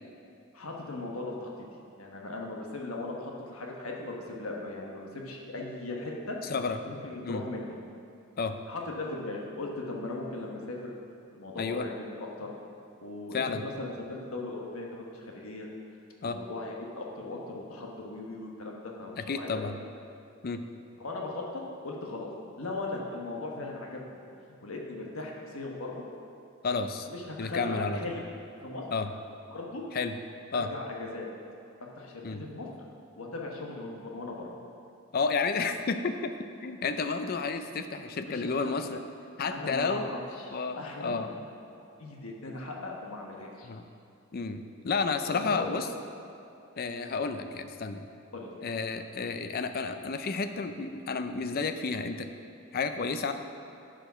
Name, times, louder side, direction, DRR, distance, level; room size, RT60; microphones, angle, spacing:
voice 1, 0.5-1.5 2.0-6.4 6.8-7.7 8.7-10.9 11.3-12.5 13.0-15.7 16.2-19.6 21.0-22.3 22.6-24.2 24.6-26.0 27.1-28.2 28.6-28.8 29.5-29.8 30.5-31.3 32.0-32.2 32.5-32.7 33.2-34.5 38.3-38.7 39.5-41.2 41.7-43.7 45.3-45.7 48.3-48.5, left 2 dB, 75° left, -1 dB, 1.3 m, -38 dB
voice 2, 19.2-19.8 20.4-20.6 26.6-27.1 27.4-28.2 28.9-29.1 29.9-30.1 30.5-30.7 32.2-32.4 35.1-36.3 36.6-39.0 39.4-40.1 40.5-41.3 43.6-43.8 44.3-45.9 46.8-48.1 48.6-52.3 52.7-53.3, left 4 dB, 45° left, 9 dB, 0.4 m, -31 dB
10.0 x 5.1 x 5.7 m, 2.6 s
head